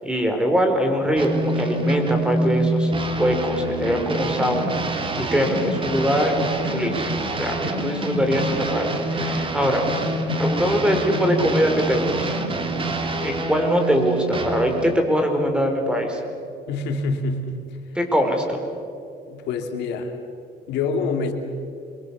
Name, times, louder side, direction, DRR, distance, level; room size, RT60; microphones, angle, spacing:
voice 1, 0.0-6.3 6.7-9.8 10.4-12.4 13.2-16.2 17.9-18.6, equal, 5° right, 4 dB, 4.6 m, -22 dB
sound 1, 1.2-14.9, right 1 dB, 30° right, 2.9 m, -26 dB
voice 2, 16.7-17.6 19.3-20.1 20.7-21.3, left 4 dB, 85° left, 5 dB, 2.7 m, -26 dB
26.5 x 23.5 x 7.2 m, 2.4 s
cardioid pair, 110°, 17 cm